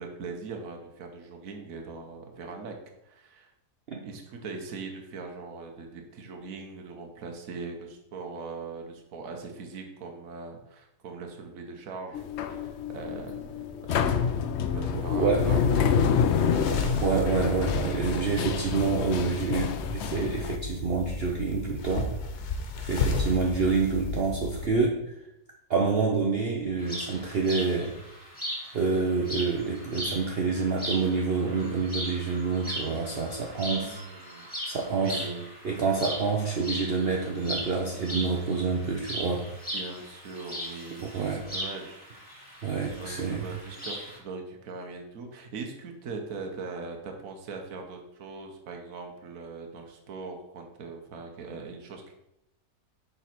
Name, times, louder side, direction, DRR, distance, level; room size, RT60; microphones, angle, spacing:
voice 1, 0.0-2.7 3.0-3.5 4.0-13.5 13.8-16.8 33.6-34.5 34.9-35.5 39.7-42.1 42.9-52.1, right 4 dB, 65° right, 2 dB, 1.4 m, -41 dB
sound 1, 12.1-20.6, left 7 dB, 65° left, 0.7 m, -28 dB
voice 2, 14.9-15.5 17.0-22.1 22.8-25.2 25.7-28.0 28.7-34.0 34.3-35.2 35.6-39.6 41.0-41.4 42.6-43.5, right 4 dB, 50° right, 0 dB, 0.9 m, -27 dB
sound 2, 15.4-24.7, left 4 dB, 85° left, 1.5 m, -33 dB
sound 3, 26.8-44.2, equal, 5° left, 2.3 m, -38 dB
7.0 x 4.0 x 5.8 m, 0.83 s
omnidirectional pair, 1.6 m